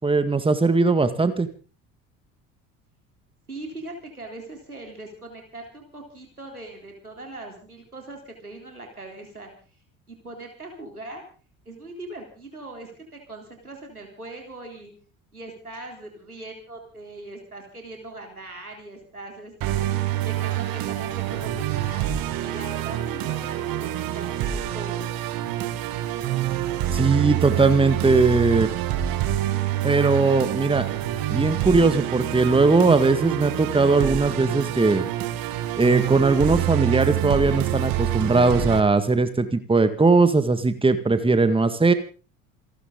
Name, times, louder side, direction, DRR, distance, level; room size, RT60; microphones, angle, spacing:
voice 1, 0.0-1.5 26.9-28.7 29.8-30.9 31.3-35.0 35.8-41.9, right 3 dB, 10° right, 10 dB, 1.9 m, -19 dB
voice 2, 3.5-9.5 10.1-11.2 11.7-14.9 15.3-25.1, right 2 dB, 90° right, 2 dB, 3.8 m, -40 dB
Musical instrument, 19.6-38.8, right 12 dB, 50° right, 2.0 m, -26 dB
27.5 x 12.0 x 4.0 m, 0.38 s
figure-of-eight pair, 60°, 43 cm